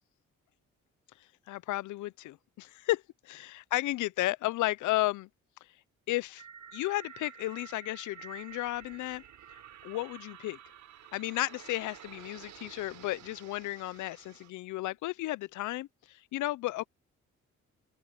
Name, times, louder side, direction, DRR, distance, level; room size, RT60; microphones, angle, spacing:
voice 1, 1.5-5.3 6.1-6.4 6.7-9.2 9.8-10.6 11.1-16.9, left 17 dB, 80° left, 0.6 m, -33 dB
sound 1, 6.4-14.5, right 9 dB, 75° right, 5.7 m, -51 dB
open air
cardioid pair, 90°, 30 cm